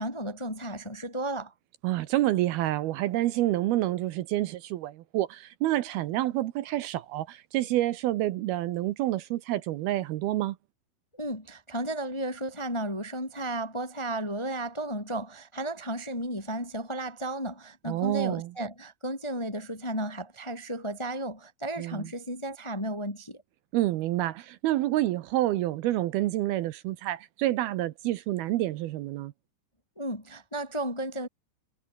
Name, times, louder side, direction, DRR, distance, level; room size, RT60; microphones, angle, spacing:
voice 1, 0.0-1.5 11.2-23.4 29.9-31.3, right 1 dB, 10° left, 1.5 m, -34 dB
voice 2, 1.8-10.6 17.9-18.5 21.8-22.1 23.7-29.3, right 15 dB, 75° right, 2.6 m, -28 dB
omnidirectional pair, 4.9 m